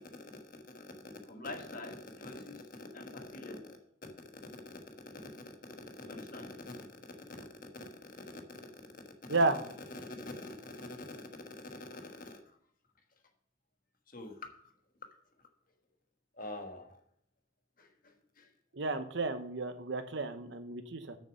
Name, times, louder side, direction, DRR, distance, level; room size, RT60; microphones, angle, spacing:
voice 1, 0.1-1.0 1.3-3.7 4.6-4.7 5.1-5.3 6.0-6.9 7.7-7.8 8.5-8.6 9.3-9.4 9.9-12.4 14.1-14.7 16.3-17.0 17.8-18.5, left 2 dB, 45° left, 4 dB, 1.3 m, -45 dB
voice 2, 18.7-21.2, right 3 dB, 60° right, 9 dB, 0.8 m, -32 dB
6.6 x 6.6 x 6.4 m, 0.68 s
head